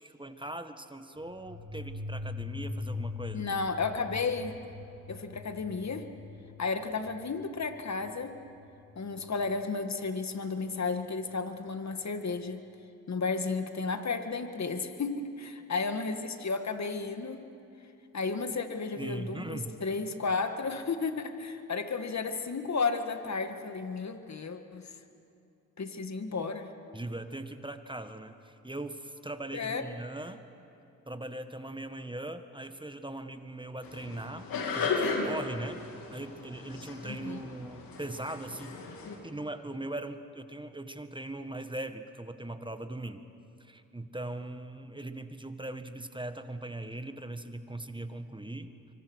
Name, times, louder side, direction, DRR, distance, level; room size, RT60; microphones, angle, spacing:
voice 1, 0.0-3.5 19.0-19.8 26.9-30.4 31.1-34.5 34.7-35.8 36.1-38.8 39.2-43.2 43.6-48.7, right 1 dB, 15° right, 9 dB, 1.6 m, -40 dB
sound 1, 1.2-9.6, left 3 dB, 60° right, 2.6 m, -42 dB
voice 2, 3.3-4.6 5.1-6.1 6.6-8.3 9.0-12.6 13.1-17.5 18.1-24.9 25.8-26.7 29.5-29.8 37.0-37.5, left 4 dB, 50° left, 7 dB, 1.9 m, -33 dB
sound 2, 33.8-39.2, left 4 dB, 85° left, 2.9 m, -35 dB
25.5 x 24.5 x 6.4 m, 2.7 s
supercardioid pair, 45°, 35 cm